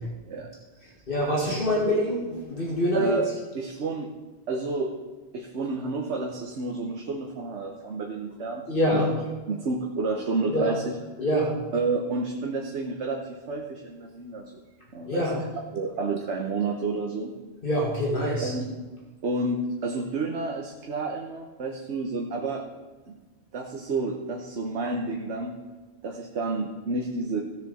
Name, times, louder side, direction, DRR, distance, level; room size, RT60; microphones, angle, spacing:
voice 1, 1.1-3.1 8.7-9.1 10.5-10.7 11.2-11.6 15.1-15.4 17.6-18.5, equal, 55° left, -4 dB, 2.2 m, -25 dB
voice 2, 2.9-4.1 4.5-4.9 5.3-8.6 8.9-9.0 9.5-11.0 11.7-14.5 14.9-15.2 15.7-17.3 18.4-18.7 19.2-22.6 23.1-23.2 23.5-25.6 26.0-27.4, right 3 dB, 80° right, 1 dB, 1.3 m, -30 dB
17.0 x 6.7 x 4.2 m, 1.2 s
omnidirectional pair, 1.1 m